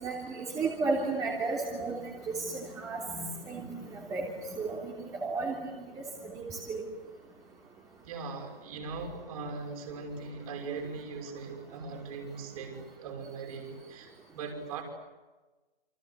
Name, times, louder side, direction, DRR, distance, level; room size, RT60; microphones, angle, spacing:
voice 1, 0.0-4.3 4.5-5.9 6.2-6.8, right 3 dB, 10° right, -2 dB, 3.3 m, -34 dB
voice 2, 8.0-14.8, right 4 dB, 40° right, 4 dB, 6.0 m, -40 dB
29.0 x 25.0 x 8.1 m, 1.2 s
figure-of-eight pair, 140°, 29 cm